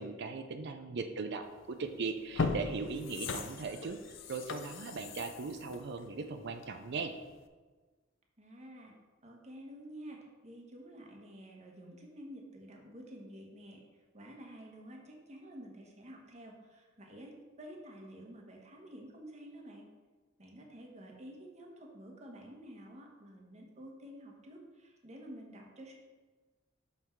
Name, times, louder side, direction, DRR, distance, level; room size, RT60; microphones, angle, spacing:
voice 1, 0.0-4.0 4.3-7.1, right 4 dB, 60° right, 7 dB, 0.5 m, -39 dB
sound 1, 1.6-1.7 2.2-6.9 7.3-7.4, left 4 dB, 70° left, 0.5 m, -38 dB
voice 2, 8.4-9.0 9.2-19.9 20.4-25.9, equal, 35° right, 1 dB, 1.3 m, -50 dB
6.4 x 5.7 x 4.6 m, 1.3 s
head